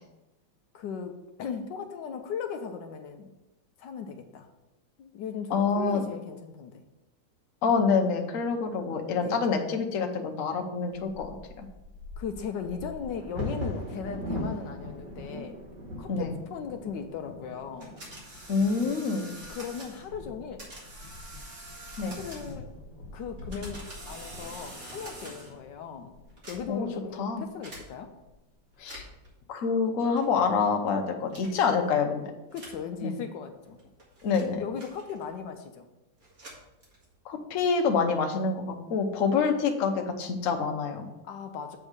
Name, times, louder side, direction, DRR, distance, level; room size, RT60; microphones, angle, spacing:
voice 1, 0.7-3.3 3.8-4.5 5.0-6.8 9.1-9.4 12.2-15.6 16.0-18.0 19.2-20.7 22.0-22.7 23.1-26.1 26.5-28.1 31.8-32.0 32.5-33.8 34.5-35.9 38.3-38.4 41.2-41.8, left 6 dB, 75° left, 6 dB, 1.3 m, -38 dB
voice 2, 5.5-6.0 7.6-11.7 16.1-16.3 18.5-19.3 22.0-22.1 26.7-26.9 27.2-27.4 28.8-29.0 29.5-32.2 33.0-33.2 34.2-34.6 37.2-41.1, left 5 dB, 55° left, 3 dB, 1.1 m, -27 dB
Bird vocalization bird call bird song / Wind / Thunder, 10.9-26.8 27.5-27.6 27.9-28.3 28.7-29.3, left 1 dB, 65° right, 2.3 m, -41 dB
sound 1, 17.8-20.1 20.6-22.7 23.3-25.6 26.3-26.9 27.6-27.9 28.7-29.3 30.2-30.5 31.3-31.7 32.5-32.9 33.6-35.4 36.2-37.2, right 1 dB, 40° right, 2.1 m, -46 dB
7.7 x 3.6 x 6.5 m, 0.99 s
omnidirectional pair, 2.0 m